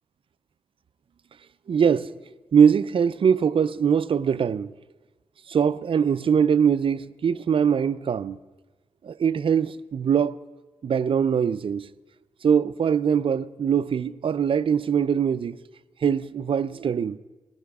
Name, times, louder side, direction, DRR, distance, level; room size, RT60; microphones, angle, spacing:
voice 1, 1.7-2.1 2.5-4.7 5.5-8.4 9.0-10.4 10.8-11.9 12.4-15.6 16.0-17.2, right 7 dB, 50° right, 0.5 m, -22 dB
21.0 x 10.5 x 2.4 m
supercardioid pair, 40°, 12 cm